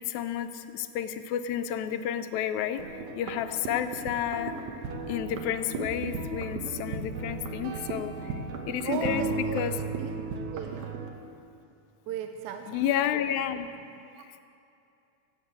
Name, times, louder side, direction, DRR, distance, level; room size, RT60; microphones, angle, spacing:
voice 1, 0.1-4.5 5.0-8.4 8.7-9.3 9.6-9.7 12.7-13.7 14.2-14.3, left 9 dB, 80° left, 9 dB, 2.0 m, -31 dB
sound 1, 2.8-11.1, right 4 dB, 75° right, 2.4 m, -35 dB
voice 2, 8.8-9.7 10.0-10.2 10.5-10.9 12.1-12.8 14.1-14.2, right 9 dB, 90° right, 6 dB, 2.1 m, -37 dB
15.5 x 8.1 x 8.0 m, 2.6 s
omnidirectional pair, 3.4 m